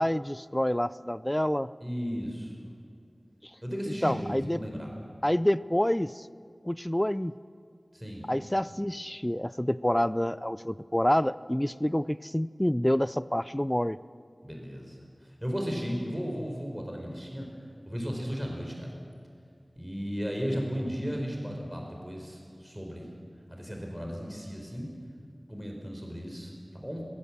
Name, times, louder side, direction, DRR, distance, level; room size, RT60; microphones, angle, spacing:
voice 1, 0.0-1.7 4.0-4.6 5.2-6.3 6.6-7.3 8.3-14.0, equal, 15° left, 17 dB, 0.5 m, -27 dB
voice 2, 1.8-2.5 3.6-4.9 7.9-8.3 14.4-17.5 17.9-18.9 19.8-23.1 23.5-24.9 25.5-27.0, equal, 10° right, 0 dB, 4.7 m, -35 dB
21.5 x 20.5 x 7.4 m, 2.3 s
wide cardioid pair, 50°, 0 cm